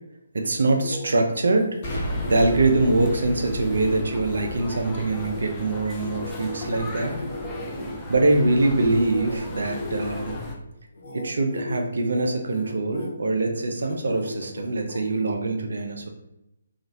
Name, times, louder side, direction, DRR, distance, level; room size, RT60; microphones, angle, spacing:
voice 1, 0.3-1.7 2.3-7.1 8.1-10.4 11.1-16.1, right 2 dB, 65° right, 4 dB, 0.5 m, -23 dB
granular synthesizer tibetan monk, 0.6-8.4 8.8-10.5 10.9-11.2 11.5-11.8 12.1-13.1 13.5-15.3, left 1 dB, 60° left, 1.0 m, -38 dB
Explosion, 1.8-6.7, equal, 35° left, 0.9 m, -34 dB
sound 1, 1.8-10.6, left 2 dB, 10° left, 0.4 m, -37 dB
2.9 x 2.4 x 2.6 m, 0.87 s
figure-of-eight pair, 140°, 0 cm